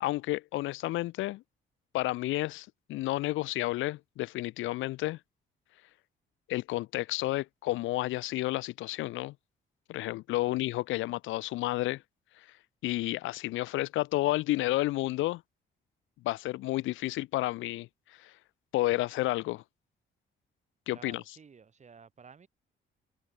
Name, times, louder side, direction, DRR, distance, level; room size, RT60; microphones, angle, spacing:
voice 1, 0.0-1.4 1.9-5.2 6.5-9.3 9.9-12.0 12.8-15.4 16.2-17.9 18.2-18.3 18.7-19.6 20.9-21.2, left 17 dB, 80° left, 0.4 m, -31 dB
voice 2, 20.9-22.5, right 6 dB, 35° right, 1.8 m, -53 dB
cardioid pair, 90°, 20 cm